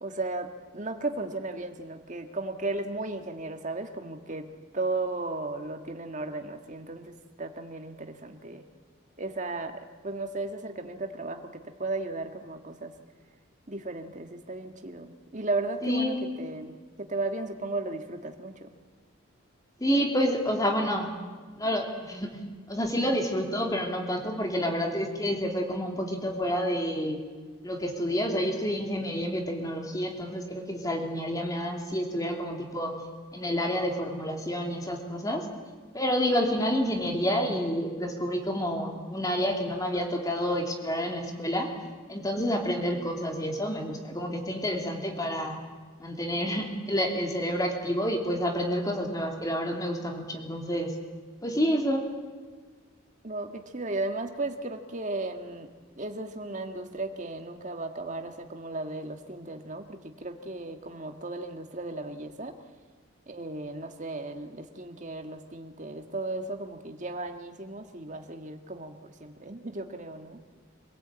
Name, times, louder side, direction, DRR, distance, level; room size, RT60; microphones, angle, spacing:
voice 1, 0.0-8.6 9.2-12.9 13.7-18.7 53.2-55.7 56.0-62.6 63.3-70.4, right 2 dB, 35° right, 6 dB, 1.8 m, -35 dB
voice 2, 15.8-16.3 19.8-21.1 21.6-22.3 22.7-27.2 27.6-32.9 33.3-35.4 35.9-41.7 42.1-45.6 46.0-50.9 51.4-52.1, equal, 15° left, 2 dB, 2.9 m, -29 dB
26.0 x 17.5 x 8.8 m, 1.5 s
head